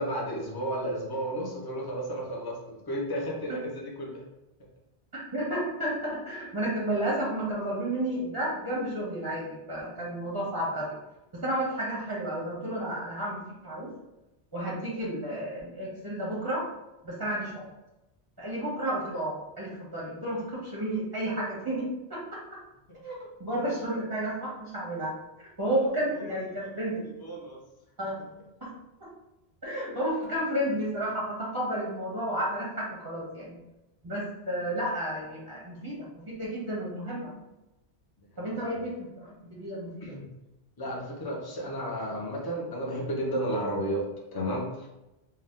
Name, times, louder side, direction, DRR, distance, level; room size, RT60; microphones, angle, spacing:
voice 1, 0.0-4.2 26.1-26.3 26.6-26.7 27.2-27.6 38.4-38.8 40.0-40.3 40.8-44.9, right 1 dB, 30° left, -2 dB, 0.5 m, -33 dB
voice 2, 5.1-11.0 11.3-13.9 14.5-16.6 17.0-17.6 18.4-22.4 23.0-25.1 25.6-27.0 28.0-28.2 28.6-28.7 29.0-29.1 29.6-33.6 34.0-37.3 38.4-39.9, right 1 dB, 25° right, -6 dB, 0.6 m, -32 dB
2.7 x 2.1 x 3.4 m, 0.97 s
omnidirectional pair, 1.1 m